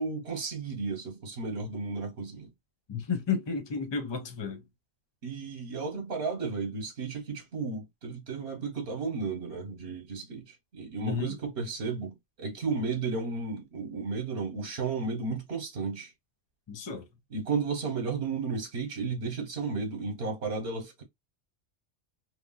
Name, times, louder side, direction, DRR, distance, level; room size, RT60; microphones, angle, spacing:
voice 1, 0.0-2.5 5.2-16.1 17.3-21.0, right 4 dB, 65° right, 1.2 m, -33 dB
voice 2, 2.9-4.6 11.0-11.4 16.7-17.0, left 5 dB, 50° left, 0.3 m, -32 dB
3.1 x 2.3 x 2.3 m
omnidirectional pair, 1.1 m